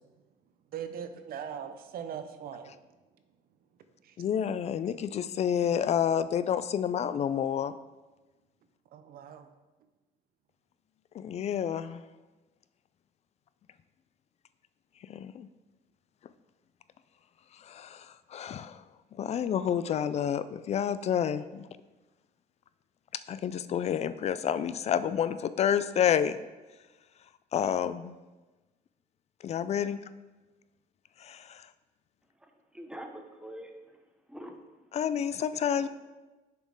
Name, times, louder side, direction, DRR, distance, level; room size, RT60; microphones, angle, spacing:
voice 1, 0.7-2.7 8.9-9.5, right 8 dB, 60° right, 9 dB, 0.6 m, -40 dB
voice 2, 4.2-7.7 11.1-12.0 15.1-15.5 17.6-18.8 19.2-21.7 23.1-26.4 27.5-28.1 29.4-30.0 31.2-31.7 34.9-35.9, left 8 dB, 40° left, 14 dB, 0.3 m, -29 dB
voice 3, 32.4-34.0 34.3-34.6 35.8-35.9, equal, 5° right, 4 dB, 0.8 m, -45 dB
6.7 x 4.4 x 4.8 m, 1.2 s
cardioid pair, 110°, 17 cm